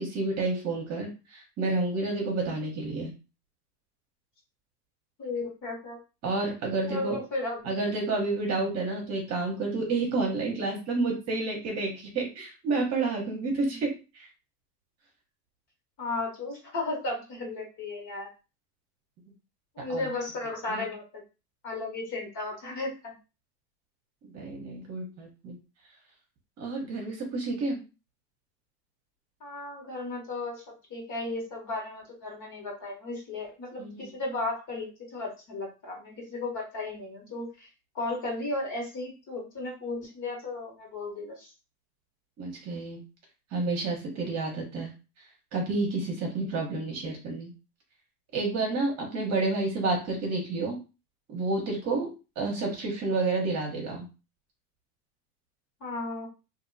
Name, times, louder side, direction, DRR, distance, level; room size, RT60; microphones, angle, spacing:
voice 1, 0.0-3.1 6.2-7.2 7.6-14.3 19.9-20.1 20.7-20.9 24.2-25.6 26.6-27.8 33.8-34.1 42.4-43.0 43.5-44.9 45.5-47.5 48.3-50.8 51.3-52.1 52.4-54.1, right 3 dB, 30° right, 0 dB, 1.1 m, -30 dB
voice 2, 5.2-6.0 6.9-7.6 16.0-18.3 19.7-21.2 21.6-23.1 29.4-30.6 30.9-37.7 37.9-41.5 52.4-52.6 55.8-56.3, left 2 dB, 40° left, -1 dB, 1.6 m, -35 dB
2.7 x 2.6 x 2.7 m, 0.30 s
supercardioid pair, 120°, 48 cm